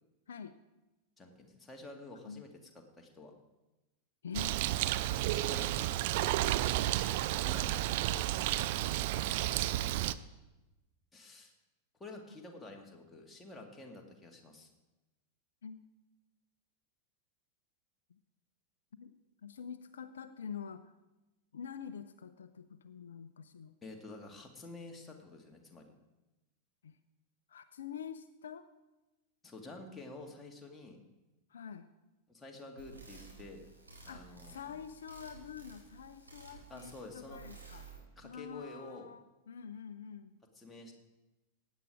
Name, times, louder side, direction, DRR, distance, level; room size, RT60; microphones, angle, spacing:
voice 1, 1.2-2.5 3.0-3.3 5.3-6.0 7.4-8.3 9.3-10.0 11.1-11.5 12.0-14.7 23.8-25.9 29.4-31.0 32.3-33.7 34.0-34.7 36.7-37.4 38.2-39.1 40.6-40.9, left 2 dB, 10° left, 1 dB, 2.1 m, -49 dB
voice 2, 4.2-4.6 12.3-12.4 15.6-15.8 19.0-19.1 19.4-20.9 21.5-23.7 26.8-27.0 27.5-28.7 31.5-31.9 34.1-37.9 38.2-40.4, left 7 dB, 65° left, 11 dB, 0.6 m, -46 dB
Bird, 4.3-10.1, right 15 dB, 50° right, 0.5 m, -32 dB
sound 1, 32.8-38.0, right 5 dB, 85° right, 4.2 m, -54 dB
16.0 x 9.4 x 4.9 m, 1.0 s
figure-of-eight pair, 90°, 0 cm